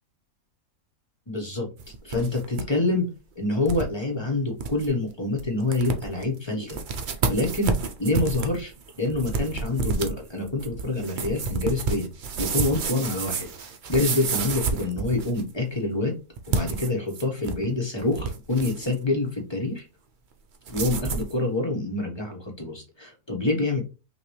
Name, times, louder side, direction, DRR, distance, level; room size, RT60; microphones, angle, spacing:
voice 1, 1.3-1.7 2.0-3.1 3.3-6.8 7.3-8.7 9.0-12.1 12.4-13.5 13.9-16.1 16.5-19.9 20.7-23.8, left 2 dB, 20° left, 0 dB, 1.1 m, -26 dB
sound 1, 1.8-2.7 3.0-3.1 3.7-3.9 4.3-4.4 4.6-4.9 5.4-5.5 5.7-6.2 6.7-15.5 16.4-17.7 18.0-18.9 20.7-21.3, right 4 dB, 65° right, 0.4 m, -29 dB
5.8 x 2.6 x 3.2 m, 0.30 s
omnidirectional pair, 1.7 m